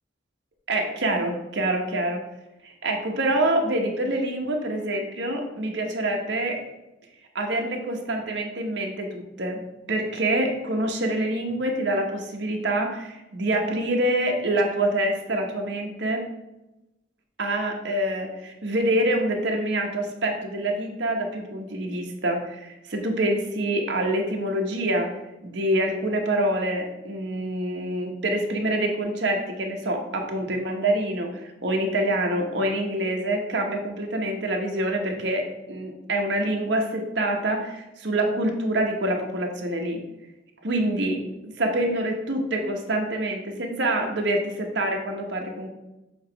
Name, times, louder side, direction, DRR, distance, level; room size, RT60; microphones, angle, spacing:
voice 1, 0.7-2.2 2.6-6.6 7.3-9.6 9.9-16.2 17.4-25.1 25.4-40.0 40.6-41.2 41.6-45.7, right 1 dB, 65° right, 2 dB, 1.1 m, -26 dB
7.1 x 2.9 x 4.6 m, 0.97 s
head